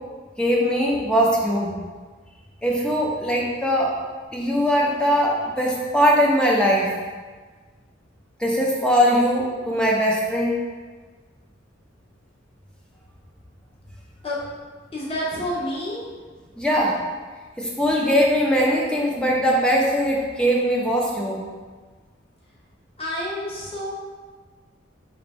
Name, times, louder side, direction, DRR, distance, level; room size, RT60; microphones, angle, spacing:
voice 1, 0.4-1.8 2.6-3.9 4.3-6.9 8.4-10.6 16.6-17.0 17.6-21.5, equal, 5° left, -3 dB, 0.4 m, -21 dB
voice 2, 14.9-16.3 23.0-23.9, left 1 dB, 30° left, -5 dB, 0.8 m, -29 dB
3.9 x 2.5 x 3.3 m, 1.4 s
head